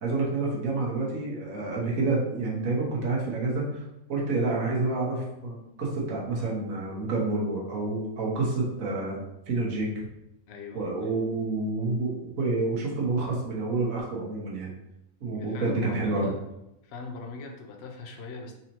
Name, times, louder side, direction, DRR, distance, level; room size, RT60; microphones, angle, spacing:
voice 1, 0.0-3.8 4.1-9.2 9.5-9.9 10.7-14.7 15.2-16.3, right 3 dB, 65° right, -3 dB, 1.5 m, -28 dB
voice 2, 10.5-11.0 15.3-16.4 16.8-18.5, left 3 dB, 55° left, 2 dB, 0.8 m, -40 dB
4.1 x 4.0 x 2.9 m, 0.87 s
omnidirectional pair, 1.5 m